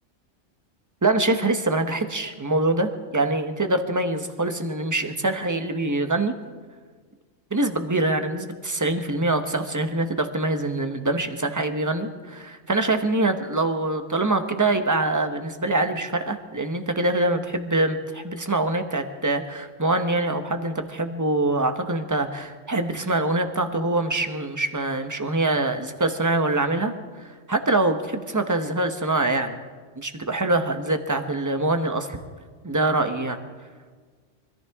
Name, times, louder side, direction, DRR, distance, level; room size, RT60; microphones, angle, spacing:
voice 1, 1.0-6.3 7.5-26.9 27.2-29.6 30.0-32.2 32.6-33.4, right 2 dB, 15° right, 7 dB, 1.0 m, -24 dB
25.0 x 14.5 x 3.6 m, 1.5 s
omnidirectional pair, 1.3 m